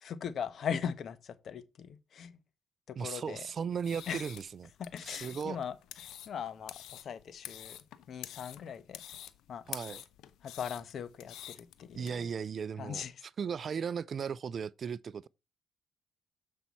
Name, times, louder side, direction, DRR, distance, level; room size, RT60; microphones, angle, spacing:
voice 1, 0.0-2.4 2.9-3.5 4.1-4.2 4.8-5.8 6.3-7.8 8.1-9.0 9.5-9.6 10.4-12.3 12.8-13.2, left 7 dB, 60° left, 0.9 m, -39 dB
voice 2, 3.0-4.7 5.0-5.6 9.7-10.0 12.0-13.0 13.4-15.3, right 6 dB, 50° right, 0.3 m, -36 dB
sound 1, 3.7-12.1, left 11 dB, 85° left, 0.7 m, -48 dB
7.5 x 5.5 x 4.1 m
cardioid pair, 90°, 0 cm